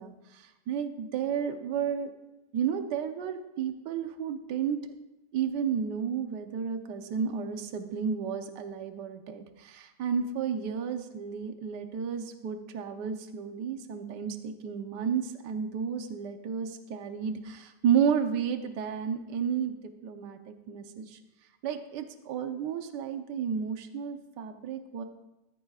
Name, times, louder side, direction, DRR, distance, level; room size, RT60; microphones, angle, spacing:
voice 1, 0.0-2.1 2.5-4.8 5.3-19.7 20.0-21.2 21.6-25.0, right 7 dB, 70° right, 6 dB, 1.5 m, -32 dB
19.5 x 13.0 x 2.4 m, 0.96 s
omnidirectional pair, 1.9 m